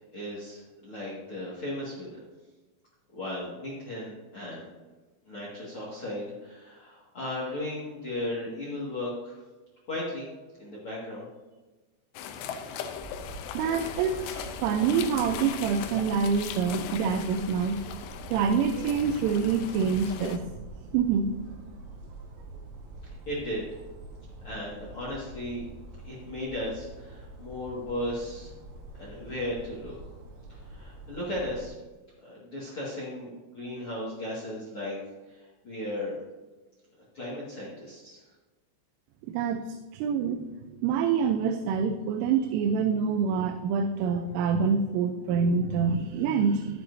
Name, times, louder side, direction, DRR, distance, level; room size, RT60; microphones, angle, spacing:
voice 1, 0.0-2.2 3.1-4.7 5.2-9.4 9.9-10.3 10.6-11.3 23.0-23.6 24.4-25.6 26.0-28.5 28.9-29.9 30.5-31.7 32.2-35.0 35.3-36.2 37.1-38.2, left 1 dB, 55° left, -5 dB, 1.6 m, -36 dB
sound 1, 12.1-20.4, left 8 dB, 85° left, 2.5 m, -39 dB
sound 2, 12.9-31.7, right 2 dB, 65° right, 3.2 m, -45 dB
voice 2, 13.5-17.8 18.3-20.4 20.9-21.3 39.3-40.5 40.8-46.8, right 6 dB, 85° right, 6 dB, 3.2 m, -26 dB
11.0 x 11.0 x 2.7 m, 1.2 s
omnidirectional pair, 5.7 m